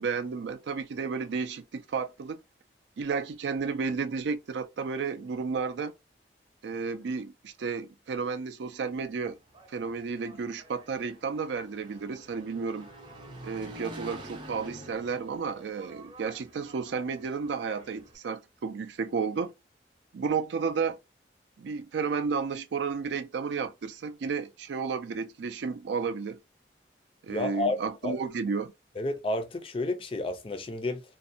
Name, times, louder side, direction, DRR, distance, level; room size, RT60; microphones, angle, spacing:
voice 1, 0.0-2.4 3.0-5.9 6.6-9.4 9.7-12.9 13.4-19.5 20.1-21.0 21.6-26.4 27.2-28.7, right 5 dB, 80° right, 0.4 m, -32 dB
Engine, 9.3-18.2, right 1 dB, 25° right, 0.5 m, -47 dB
voice 2, 27.3-28.2 29.0-31.0, left 2 dB, 30° left, 0.4 m, -31 dB
2.5 x 2.1 x 2.6 m
head